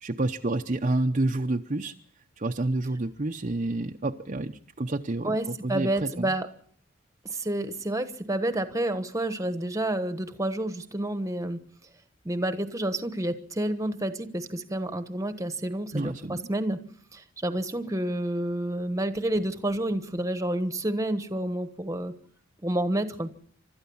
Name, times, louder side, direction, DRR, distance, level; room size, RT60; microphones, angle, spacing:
voice 1, 0.0-1.9 2.4-6.3 15.9-16.5, right 2 dB, 35° right, 3 dB, 0.7 m, -29 dB
voice 2, 5.2-6.5 7.2-11.6 12.2-16.8 17.1-22.1 22.6-23.3, right 1 dB, 15° right, 10 dB, 1.2 m, -29 dB
29.5 x 13.0 x 7.1 m, 0.64 s
head